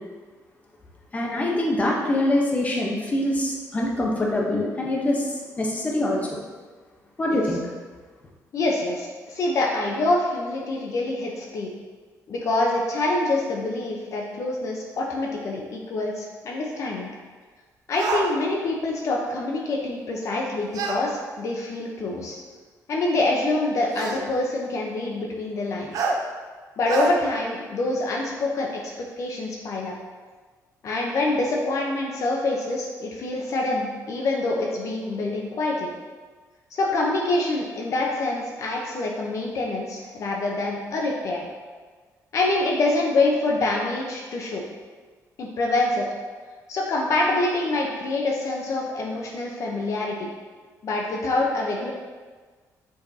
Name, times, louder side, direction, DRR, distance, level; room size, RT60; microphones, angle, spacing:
voice 1, 1.1-6.4 7.2-7.6, left 1 dB, 20° left, -2 dB, 0.9 m, -24 dB
voice 2, 8.5-11.7 12.3-17.1 17.9-22.4 22.9-26.1 26.8-29.9 30.8-35.9 36.7-41.5 42.3-44.6 45.4-46.1 46.7-50.3 50.8-51.9, left 2 dB, 50° left, -1 dB, 0.8 m, -26 dB
sound 1, 18.0-18.3 20.7-21.0 22.3-22.4 23.9-24.2 25.9-26.2 26.9-27.1, right 4 dB, 65° right, 0.7 m, -26 dB
6.6 x 5.0 x 2.8 m, 1.4 s
cardioid pair, 145°, 7 cm